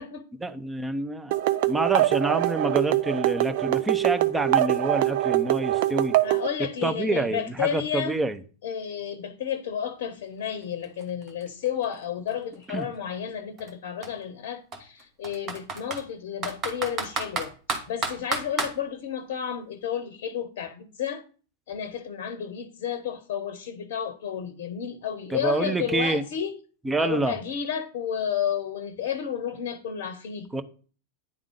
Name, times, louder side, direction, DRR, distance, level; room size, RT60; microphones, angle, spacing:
voice 1, 0.4-6.1 6.8-8.4 12.7-12.9 25.3-26.2 26.8-27.4 30.5-30.6, right 2 dB, 10° right, 0.7 m, -27 dB
sound 1, 1.3-6.5, right 15 dB, 60° right, 0.5 m, -24 dB
voice 2, 6.2-8.1 8.6-21.2 21.7-26.5 27.0-30.5, left 8 dB, 60° left, 0.7 m, -31 dB
Computer keyboard, 10.5-10.6 10.8-12.8 13.6-13.7 14.0-14.1 14.7-16.0 16.4-18.7, right 3 dB, 35° right, 1.4 m, -31 dB
9.7 x 3.6 x 5.0 m
hypercardioid pair, 95°, 0 cm